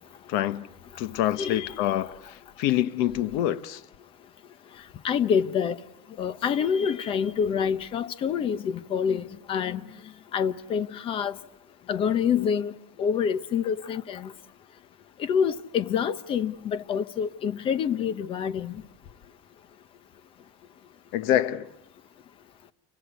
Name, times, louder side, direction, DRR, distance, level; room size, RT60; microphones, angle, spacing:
voice 1, 0.3-0.7 1.0-3.8 21.1-21.7, left 12 dB, 70° left, 1.2 m, -26 dB
voice 2, 1.4-1.7 5.0-5.8 6.2-9.8 10.3-11.4 11.9-12.7 13.0-14.3 15.2-18.7, left 7 dB, 35° left, 1.0 m, -26 dB
29.5 x 24.5 x 8.3 m
cardioid pair, 165°, 16 cm